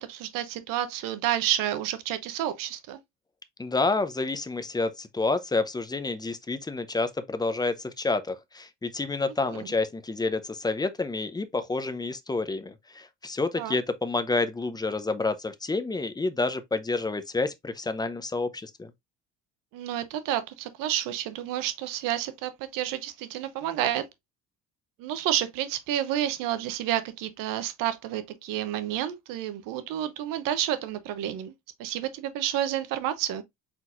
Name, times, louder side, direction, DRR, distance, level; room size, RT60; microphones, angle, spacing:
voice 1, 0.0-3.0 9.4-9.7 13.6-13.8 19.7-24.0 25.0-31.5 31.8-33.4, right 12 dB, 80° right, 0.9 m, -30 dB
voice 2, 3.6-18.9, left 3 dB, 10° left, 0.6 m, -29 dB
4.4 x 4.0 x 2.5 m
cardioid pair, 115°, 32 cm